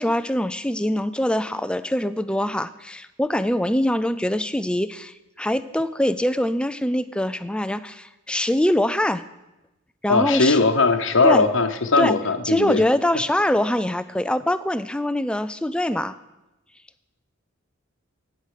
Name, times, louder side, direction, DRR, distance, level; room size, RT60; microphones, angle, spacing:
voice 1, 0.0-9.2 10.0-10.6 11.2-11.4 12.0-12.2 12.4-16.2, left 1 dB, 5° left, 13 dB, 0.4 m, -23 dB
voice 2, 10.1-12.8, left 3 dB, 60° left, 8 dB, 1.0 m, -19 dB
11.5 x 9.1 x 6.6 m, 0.99 s
head